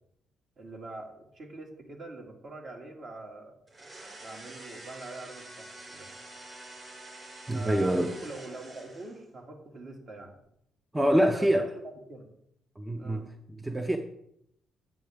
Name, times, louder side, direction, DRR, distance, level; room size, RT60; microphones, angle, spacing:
voice 1, 0.6-3.5 4.2-6.1 7.5-10.4 11.1-11.8 12.1-12.3 13.0-13.3, right 2 dB, 50° right, 2.0 m, -44 dB
sound 1, 3.7-9.3, right 2 dB, 30° right, 3.8 m, -47 dB
voice 2, 7.5-8.1 10.9-11.7 12.8-14.0, right 1 dB, 10° right, 0.6 m, -26 dB
9.0 x 7.6 x 3.5 m
cardioid pair, 90°, 0 cm